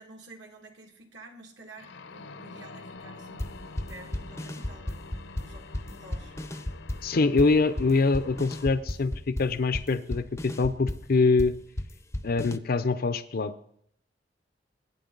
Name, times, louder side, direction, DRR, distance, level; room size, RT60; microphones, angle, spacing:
voice 1, 0.0-6.4 7.5-7.6 11.5-11.6, right 2 dB, 70° right, 3 dB, 2.1 m, -51 dB
sound 1, 1.8-8.7, left 3 dB, 80° left, 0.8 m, -46 dB
sound 2, 3.4-12.6, left 1 dB, 15° left, 0.6 m, -35 dB
voice 2, 7.0-11.5 12.2-13.5, left 3 dB, 55° left, 11 dB, 0.5 m, -24 dB
20.0 x 8.7 x 3.9 m, 0.68 s
head